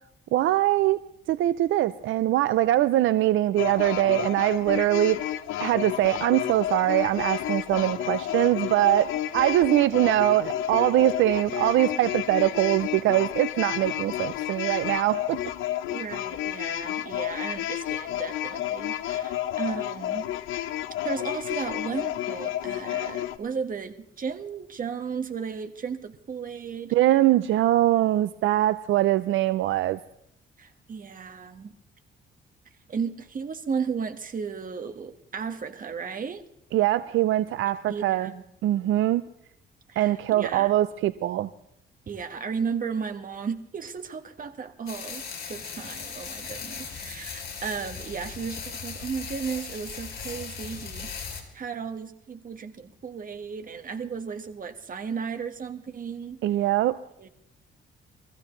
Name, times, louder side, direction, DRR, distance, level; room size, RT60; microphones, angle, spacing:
voice 1, 0.3-1.0 1.3-5.3 5.6-15.4 26.9-30.0 36.7-38.3 38.6-39.2 40.0-41.5 56.4-57.0, right 14 dB, 80° right, 14 dB, 0.5 m, -22 dB
sound 1, 3.6-23.4, left 13 dB, 85° left, 0.8 m, -31 dB
voice 2, 15.9-20.3 21.0-26.9 30.6-31.7 32.9-36.4 37.9-38.4 39.9-40.7 42.1-45.2 45.5-51.1 51.5-56.4 57.2-57.3, right 6 dB, 45° right, 7 dB, 1.6 m, -34 dB
sound 2, 44.9-51.4, left 6 dB, 55° left, 4.2 m, -38 dB
23.5 x 15.0 x 3.2 m, 0.74 s
cardioid pair, 90°, 20 cm